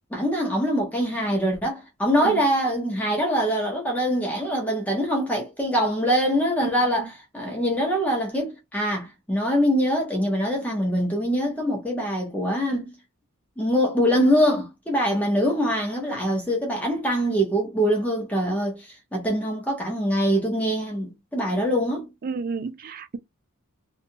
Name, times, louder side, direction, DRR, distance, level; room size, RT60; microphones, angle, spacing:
voice 1, 0.1-12.9 13.6-22.1, equal, 5° left, 0.6 m, -24 dB
voice 2, 6.7-7.1 22.2-23.2, right 4 dB, 40° right, 0.4 m, -32 dB
2.7 x 2.3 x 2.6 m
head